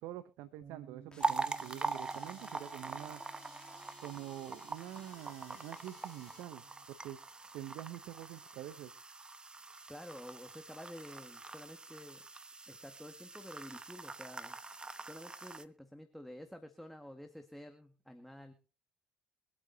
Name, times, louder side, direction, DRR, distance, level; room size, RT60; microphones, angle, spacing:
voice 1, 0.0-3.2 4.0-7.2 7.5-8.9, right 13 dB, 70° right, 12 dB, 0.8 m, -46 dB
Bass guitar, 0.6-6.9, right 8 dB, 45° right, 5.6 m, -60 dB
sound 1, 1.1-6.4, left 3 dB, 20° left, 3.0 m, -59 dB
sound 2, 1.2-15.6, right 3 dB, 20° right, 0.9 m, -43 dB
voice 2, 9.9-12.2 12.7-14.6 15.0-18.5, equal, 5° left, 6 dB, 1.8 m, -50 dB
24.0 x 8.7 x 2.8 m, 0.36 s
hypercardioid pair, 55°, 4 cm